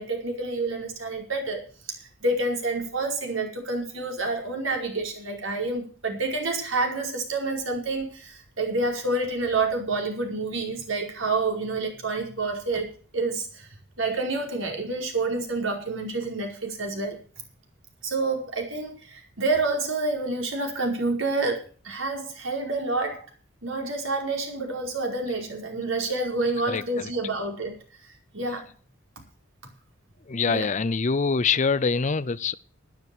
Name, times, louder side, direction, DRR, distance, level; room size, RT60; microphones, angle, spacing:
voice 1, 0.0-1.6 2.0-13.7 14.0-17.2 18.0-23.3 23.6-27.8 28.3-28.7 30.5-30.7, right 3 dB, 80° right, 4.9 m, -28 dB
voice 2, 30.3-32.6, left 5 dB, 40° left, 0.5 m, -24 dB
12.5 x 10.5 x 7.0 m
head